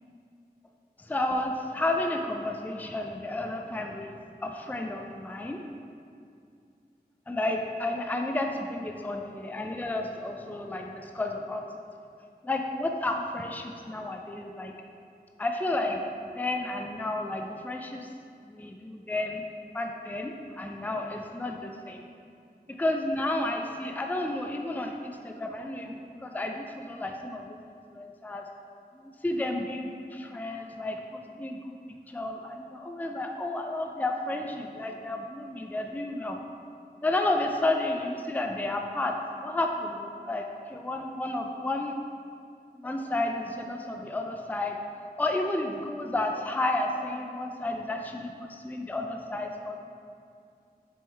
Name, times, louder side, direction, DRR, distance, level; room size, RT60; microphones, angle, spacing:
voice 1, 1.0-4.1 4.4-5.6 7.3-11.6 12.4-14.7 15.4-18.1 18.4-19.4 19.7-22.0 22.7-27.6 27.9-28.4 28.9-31.7 32.1-36.4 37.0-41.9 42.7-44.8 45.2-49.8, left 2 dB, 10° left, 3 dB, 0.4 m, -32 dB
6.1 x 3.6 x 4.5 m, 2.4 s
wide cardioid pair, 50°, 17 cm